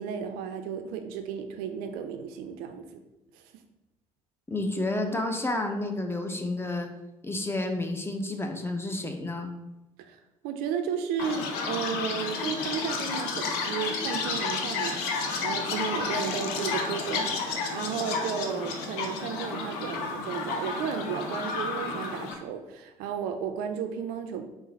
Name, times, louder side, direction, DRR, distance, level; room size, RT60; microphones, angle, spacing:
voice 1, 0.0-2.8 3.3-3.4 10.1-10.2 10.4-24.5, right 7 dB, 60° right, 7 dB, 0.4 m, -33 dB
voice 2, 4.5-6.9 7.2-9.5, left 2 dB, 15° left, 4 dB, 0.6 m, -30 dB
Chirp tweet, 11.2-22.3, left 4 dB, 65° left, 0.6 m, -31 dB
3.8 x 2.5 x 4.0 m, 0.96 s
figure-of-eight pair, 50°, 18 cm